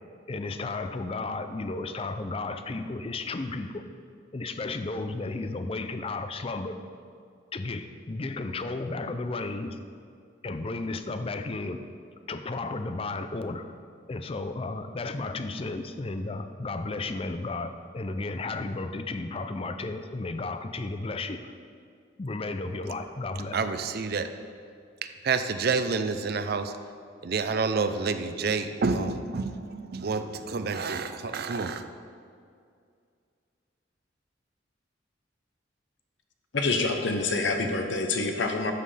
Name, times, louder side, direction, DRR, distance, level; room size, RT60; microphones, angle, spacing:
voice 1, 0.3-3.8 4.3-6.7 7.5-9.8 10.4-11.8 12.3-13.6 14.1-21.5 22.2-23.6, left 3 dB, 30° left, 9 dB, 0.4 m, -33 dB
voice 2, 23.5-24.3 25.0-26.7 27.2-31.8, right 4 dB, 55° right, 9 dB, 0.5 m, -28 dB
voice 3, 36.5-38.7, left 3 dB, 65° left, 4 dB, 0.9 m, -26 dB
12.5 x 7.6 x 3.4 m, 2.3 s
head